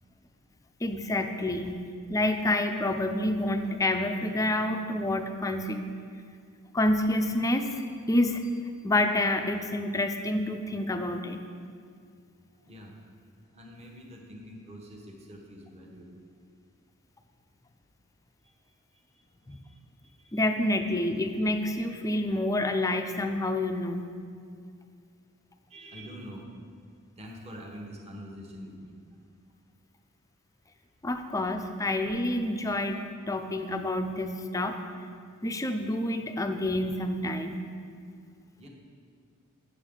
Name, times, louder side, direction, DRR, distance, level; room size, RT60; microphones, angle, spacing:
voice 1, 0.8-1.8 2.1-5.8 6.7-8.4 8.8-11.4 19.5-19.6 20.3-24.0 31.0-33.0 33.3-34.8 35.4-37.6, left 1 dB, 15° left, 6 dB, 0.4 m, -28 dB
voice 2, 12.6-12.9 13.5-16.1 19.1-19.2 19.5-19.8 20.0-20.4 25.7-26.4 27.2-28.9 38.6-38.7, equal, 30° right, -1 dB, 1.1 m, -45 dB
9.0 x 6.9 x 3.7 m, 2.2 s
head